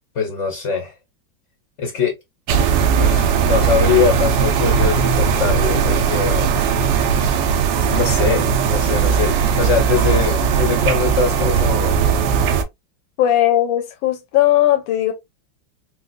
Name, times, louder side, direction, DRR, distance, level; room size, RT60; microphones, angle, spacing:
voice 1, 0.1-0.9 1.8-2.2 3.0-6.5 7.8-11.9, left 5 dB, 65° left, 0.7 m, -22 dB
sound 1, 2.5-12.6, right 6 dB, 75° right, 1.2 m, -18 dB
voice 2, 13.2-15.1, left 13 dB, 90° left, 1.4 m, -17 dB
4.7 x 2.1 x 2.2 m
omnidirectional pair, 2.1 m